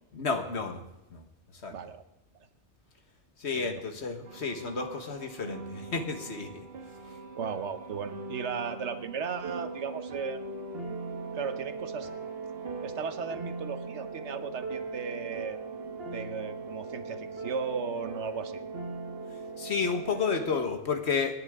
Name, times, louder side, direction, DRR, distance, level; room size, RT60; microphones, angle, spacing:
voice 1, 0.1-0.8 1.1-1.2 1.5-1.7 3.4-6.7 19.6-21.4, left 5 dB, 65° left, 6 dB, 1.7 m, -31 dB
voice 2, 1.7-2.0 3.5-3.8 7.3-10.4 11.3-12.1 12.8-15.6 16.1-18.6, right 6 dB, 75° right, 10 dB, 1.2 m, -36 dB
sound 1, 4.2-20.7, right 3 dB, 60° right, 1.4 m, -40 dB
27.5 x 10.0 x 3.7 m, 0.91 s
omnidirectional pair, 1.2 m